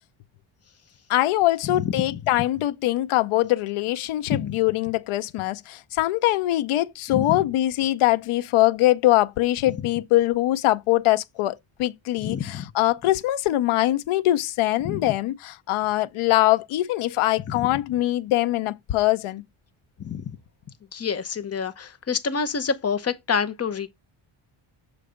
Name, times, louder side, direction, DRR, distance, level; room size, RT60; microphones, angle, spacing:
voice 1, 1.1-19.4, left 16 dB, 75° left, 0.7 m, -23 dB
voice 2, 1.6-2.2 4.4-4.6 7.1-7.3 12.2-12.7 14.8-15.1 17.5-17.7 20.0-20.3 20.9-23.9, left 6 dB, 30° left, 0.7 m, -28 dB
6.8 x 3.3 x 5.0 m
cardioid pair, 130°, 50 cm